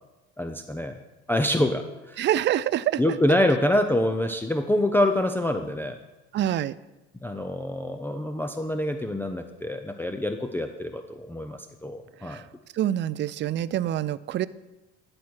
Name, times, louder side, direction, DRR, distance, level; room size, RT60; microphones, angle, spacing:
voice 1, 0.4-1.0 1.3-2.3 3.0-6.0 7.2-12.4, left 1 dB, 5° left, 5 dB, 0.5 m, -26 dB
voice 2, 2.2-3.2 6.3-6.8 12.2-12.4 12.7-14.5, right 12 dB, 40° right, 18 dB, 0.4 m, -26 dB
10.5 x 4.4 x 6.3 m, 1.1 s
supercardioid pair, 85°, 29 cm